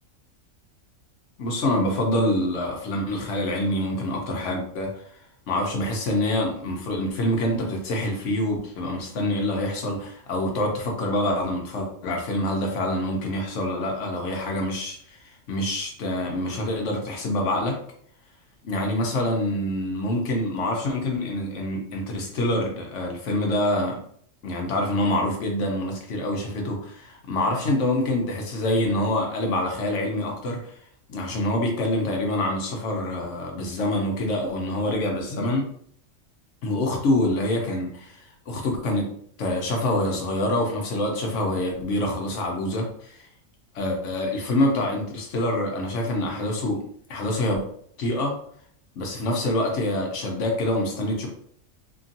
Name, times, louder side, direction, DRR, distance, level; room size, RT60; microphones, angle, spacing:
voice 1, 1.4-4.9 5.5-17.8 18.6-24.0 24.4-30.6 31.1-35.7 36.6-43.3 43.7-46.8 47.1-47.6 48.0-48.3 49.0-51.3, left 1 dB, 70° left, 1 dB, 1.1 m, -26 dB
2.9 x 2.6 x 2.5 m, 0.63 s
omnidirectional pair, 1.4 m